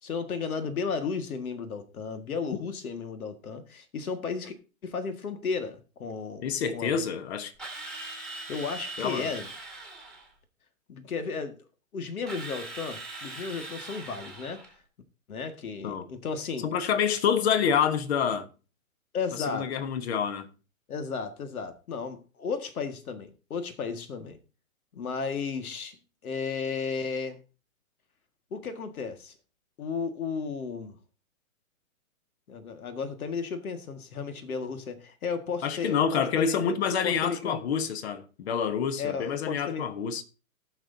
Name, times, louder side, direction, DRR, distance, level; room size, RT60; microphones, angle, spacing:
voice 1, 0.0-4.5 4.8-6.5 6.7-7.0 8.5-9.5 10.9-11.6 11.9-14.7 15.3-16.7 19.1-19.8 20.9-24.4 24.9-26.0 26.2-27.4 28.5-29.4 29.8-31.0 32.5-37.6 39.0-39.9, left 5 dB, 80° left, 1.9 m, -34 dB
voice 2, 6.4-7.5 9.0-9.3 15.8-16.1 16.6-18.5 19.5-20.5 35.6-40.2, left 7 dB, 50° left, 1.2 m, -27 dB
Drill, 7.6-10.3 12.3-14.7, right 2 dB, ahead, 1.6 m, -41 dB
18.5 x 6.3 x 2.7 m
hypercardioid pair, 155°, 42 cm